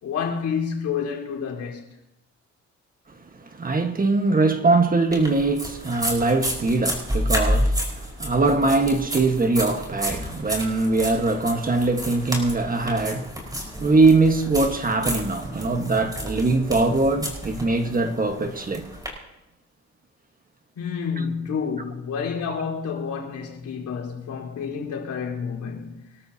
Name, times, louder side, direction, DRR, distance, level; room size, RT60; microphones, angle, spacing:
voice 1, 0.0-1.8 20.7-26.1, left 6 dB, 75° left, 4.5 m, -29 dB
voice 2, 3.5-13.3 13.8-18.9 22.5-22.6, right 3 dB, 30° right, 1.5 m, -22 dB
sound 1, 5.1-19.1, equal, 10° right, 5.0 m, -30 dB
25.5 x 13.0 x 2.9 m
cardioid pair, 90°, 30 cm